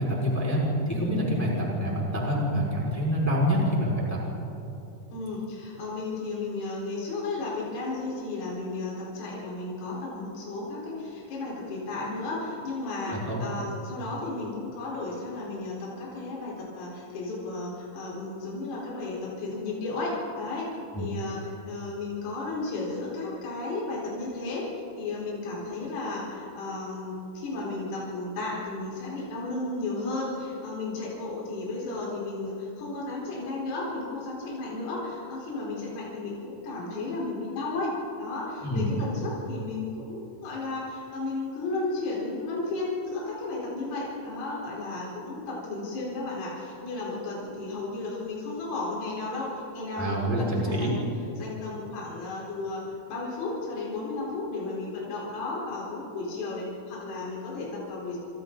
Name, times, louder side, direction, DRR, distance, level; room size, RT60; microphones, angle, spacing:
voice 1, 0.0-4.2 13.1-13.4 20.9-21.0 38.6-38.9 49.9-50.9, equal, 5° left, -4 dB, 4.6 m, -26 dB
voice 2, 5.1-20.7 21.0-21.4 21.7-37.9 38.2-51.0 51.4-58.2, left 3 dB, 85° left, -5 dB, 7.0 m, -34 dB
28.5 x 26.5 x 4.0 m, 2.8 s
omnidirectional pair, 5.8 m